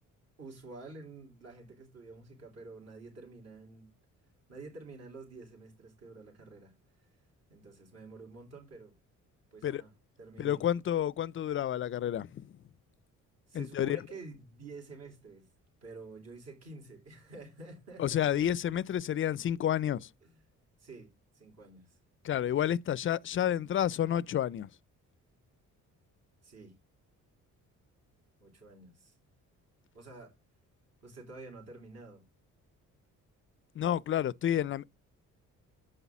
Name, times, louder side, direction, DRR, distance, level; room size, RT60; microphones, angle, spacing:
voice 1, 0.4-3.9 4.5-7.2 7.5-9.0 9.5-9.9 10.2-10.6 13.5-15.5 15.8-18.4 20.2-20.4 20.8-22.0 26.4-26.7 28.4-29.2 29.9-30.3 31.0-32.2, right 3 dB, 55° right, 3.6 m, -49 dB
voice 2, 10.4-12.5 13.5-14.0 18.0-20.1 22.2-24.7 33.8-34.9, left 10 dB, 40° left, 0.4 m, -30 dB
7.8 x 5.6 x 6.0 m
cardioid pair, 85°, 31 cm